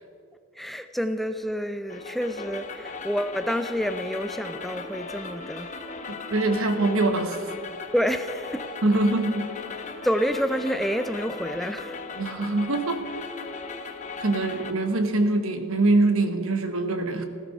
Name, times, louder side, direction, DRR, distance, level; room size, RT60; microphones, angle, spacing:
voice 1, 0.6-5.7 7.9-8.7 10.0-12.0, equal, ahead, 9 dB, 0.4 m, -28 dB
sound 1, 1.9-14.7, left 4 dB, 35° left, 0.9 m, -37 dB
voice 2, 6.3-7.5 8.8-9.5 12.2-13.1 14.2-17.2, right 2 dB, 65° right, 8 dB, 1.1 m, -23 dB
16.0 x 11.5 x 5.3 m, 2.3 s
head